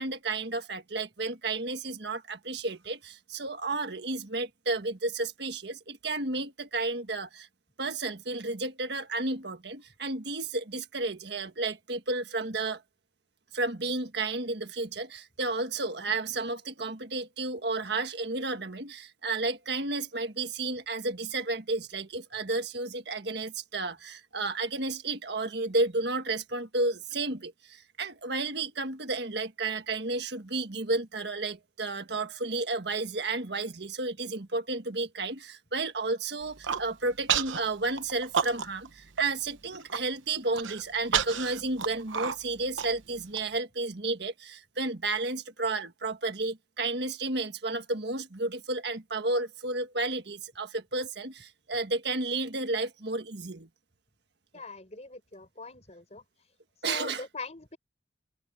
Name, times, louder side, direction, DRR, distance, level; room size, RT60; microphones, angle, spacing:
voice 1, 0.0-7.5 7.8-12.8 13.5-53.7 56.8-57.2, right 3 dB, 60° right, 1.6 m, -32 dB
Human voice, 36.4-36.8 37.3-37.6 38.0-38.9 39.2-39.3 39.7-40.0 40.5-43.4, right 7 dB, 85° right, 1.0 m, -30 dB
voice 2, 54.5-56.5 56.9-57.8, left 3 dB, 35° left, 5.7 m, -42 dB
open air
head